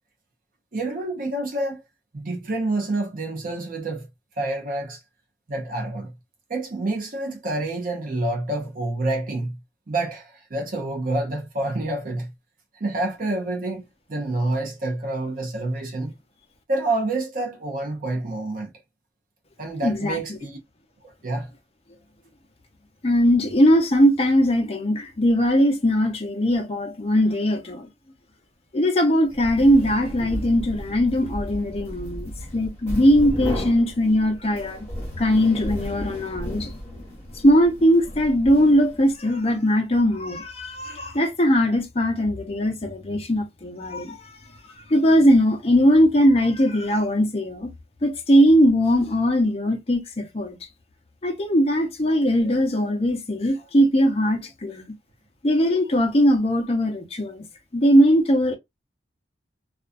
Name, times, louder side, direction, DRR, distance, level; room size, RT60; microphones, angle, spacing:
voice 1, 0.7-1.8 2.1-4.1 4.4-5.0 5.5-6.1 6.5-9.6 9.9-12.3 12.7-16.1 16.7-18.7 19.6-20.6 21.0-21.5, right 2 dB, 45° right, 0.6 m, -28 dB
voice 2, 19.8-20.4 23.0-27.9 28.7-34.9 35.2-36.7 37.4-44.3 44.9-47.7 48.0-50.6 51.2-54.8 55.4-57.5 57.7-58.5, equal, 30° left, 0.6 m, -20 dB
sound 1, 29.3-39.2, equal, 15° left, 1.2 m, -34 dB
2.4 x 2.2 x 2.4 m
head